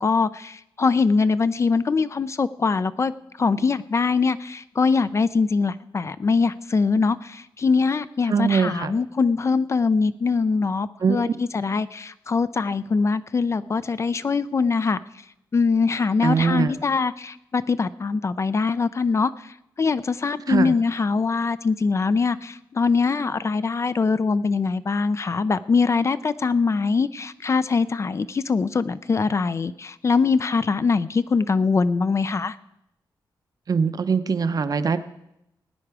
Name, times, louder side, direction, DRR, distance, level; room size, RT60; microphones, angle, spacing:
voice 1, 0.0-3.1 3.4-15.0 15.5-32.6, left 4 dB, 35° left, 14 dB, 0.4 m, -23 dB
voice 2, 8.3-8.9 11.0-11.3 16.2-16.7 20.5-20.7 33.7-35.0, right 5 dB, 50° right, 11 dB, 0.6 m, -22 dB
17.5 x 9.9 x 4.7 m, 0.84 s
wide cardioid pair, 155°, 8 cm